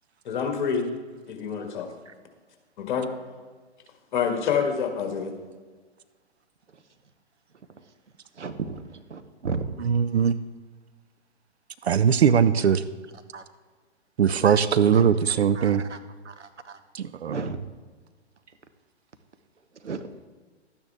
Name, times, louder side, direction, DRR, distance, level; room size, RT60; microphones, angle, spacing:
voice 1, 0.3-0.9 1.3-1.9 2.8-3.1 4.1-5.3, left 6 dB, 40° left, 4 dB, 1.9 m, -27 dB
voice 2, 8.3-9.6 13.3-13.4 14.9-15.0 15.5-16.0 16.2-16.8 17.2-17.6 19.8-20.1, right 4 dB, 80° right, 9 dB, 1.0 m, -34 dB
voice 3, 9.8-10.4 11.8-12.8 14.2-15.8 16.9-17.3, right 7 dB, 65° right, 13 dB, 0.6 m, -20 dB
12.0 x 9.4 x 3.5 m, 1.4 s
figure-of-eight pair, 120°, 35 cm